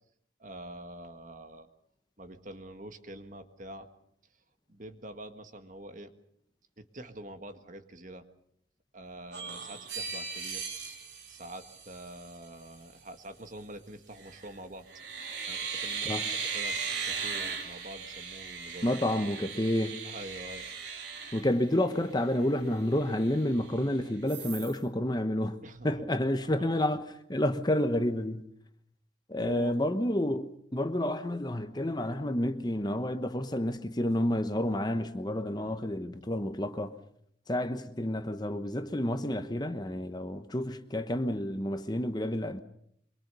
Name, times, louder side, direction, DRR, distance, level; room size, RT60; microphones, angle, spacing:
voice 1, 0.4-1.7 2.2-3.9 4.7-6.1 6.8-8.3 8.9-10.7 11.3-14.9 15.5-16.8 17.0-18.9 20.0-20.7 25.6-25.9 26.4-26.6 29.4-29.7 35.6-35.8, right 1 dB, 40° right, 1.7 m, -45 dB
sound 1, 9.3-12.3 14.2-14.5 14.9-22.2 22.6-22.7 23.0-23.9 24.3-24.8, right 5 dB, 65° right, 3.7 m, -38 dB
voice 2, 18.8-20.0 21.3-28.5 29.3-37.0 37.5-42.6, left 1 dB, 20° left, 1.0 m, -30 dB
24.5 x 23.0 x 6.8 m
head